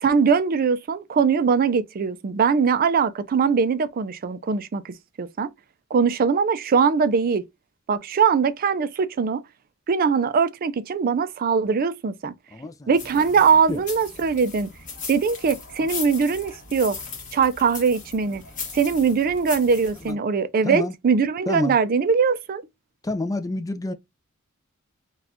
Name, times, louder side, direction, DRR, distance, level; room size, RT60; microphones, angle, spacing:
voice 1, 0.0-5.5 5.9-7.4 7.9-9.4 9.9-12.3 12.9-14.7 15.1-17.0 17.3-18.4 18.7-22.6, right 5 dB, 45° right, 0.4 m, -21 dB
voice 2, 12.5-12.9 13.7-13.8 20.0-20.2 20.6-20.9 21.5-21.8 23.0-23.9, left 2 dB, 15° left, 0.4 m, -28 dB
sound 1, 12.9-20.1, left 4 dB, 40° left, 1.6 m, -37 dB
4.1 x 2.3 x 2.6 m
head